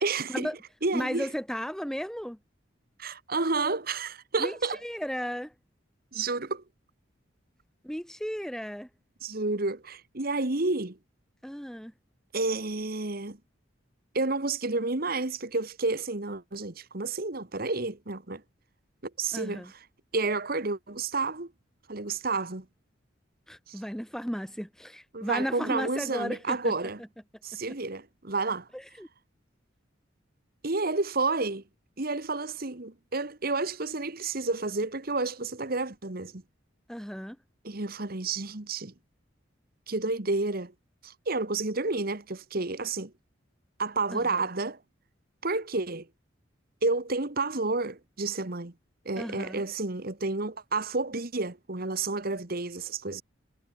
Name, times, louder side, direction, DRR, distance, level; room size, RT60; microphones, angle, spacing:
voice 1, 0.0-0.5 0.8-1.3 3.0-4.8 6.1-6.6 9.2-11.0 12.3-13.4 14.1-18.4 19.2-19.7 20.1-21.5 21.9-22.7 23.7-23.8 25.1-27.0 27.4-28.7 30.6-31.6 32.0-36.4 37.6-38.9 39.9-40.7 41.0-43.1 43.8-44.8 45.4-46.1 46.8-48.7 49.1-53.2, right 3 dB, 50° right, 1.7 m, -30 dB
voice 2, 0.9-2.4 4.4-5.5 7.8-8.9 11.4-11.9 19.3-19.7 23.5-26.7 27.5-27.6 28.7-29.1 36.9-37.4 44.1-44.4 49.2-49.6, equal, 5° left, 2.4 m, -35 dB
head